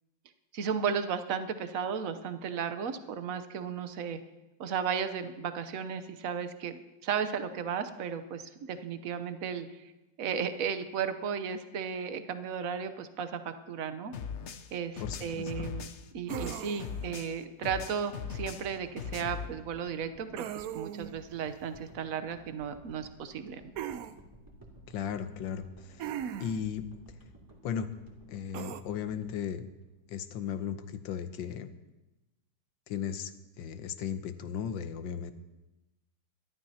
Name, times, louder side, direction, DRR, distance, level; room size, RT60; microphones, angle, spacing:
voice 1, 0.5-4.2 4.6-9.9 10.2-14.1 14.7-15.9 16.1-23.6, right 7 dB, 55° right, 10 dB, 1.0 m, -34 dB
sound 1, 14.1-17.4 17.6-19.5, left 6 dB, 90° left, 0.6 m, -39 dB
voice 2, 15.0-15.7 24.9-26.1 26.4-26.9 27.6-27.9 28.3-29.7 30.1-31.7 32.9-35.3, left 8 dB, 70° left, 10 dB, 1.4 m, -36 dB
sound 2, 16.3-17.1 20.4-21.2 23.8-24.1 26.0-26.7 28.5-28.8, right 10 dB, 85° right, 0.7 m, -38 dB
sound 3, 18.3-30.6, right 1 dB, 10° right, 2.2 m, -55 dB
24.0 x 12.5 x 2.8 m, 1.0 s
omnidirectional pair, 2.2 m